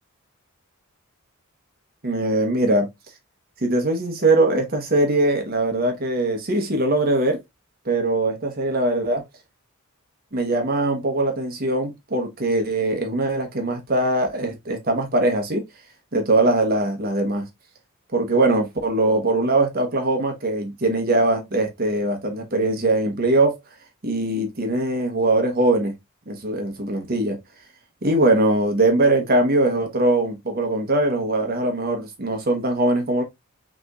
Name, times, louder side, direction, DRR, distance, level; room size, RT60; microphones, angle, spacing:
voice 1, 2.0-2.9 3.6-7.4 7.9-9.2 10.3-15.6 16.1-17.5 18.1-23.6 24.0-25.9 26.3-27.4 28.0-33.2, right 2 dB, 45° right, 1.0 m, -21 dB
5.9 x 3.0 x 2.4 m
head